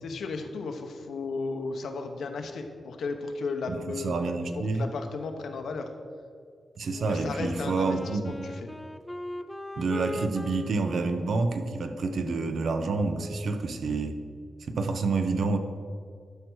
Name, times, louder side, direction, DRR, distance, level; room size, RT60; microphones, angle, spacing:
voice 1, 0.0-4.1 4.5-5.9 7.1-8.6, left 4 dB, 85° left, 5 dB, 1.0 m, -35 dB
voice 2, 3.7-4.9 6.8-8.4 9.8-14.2 14.7-15.6, right 3 dB, 70° right, 7 dB, 0.8 m, -28 dB
Wind instrument woodwind instrument, 6.9-13.6, equal, 10° left, 0.4 m, -40 dB
11.5 x 4.8 x 6.3 m, 2.2 s
wide cardioid pair, 140°, 0 cm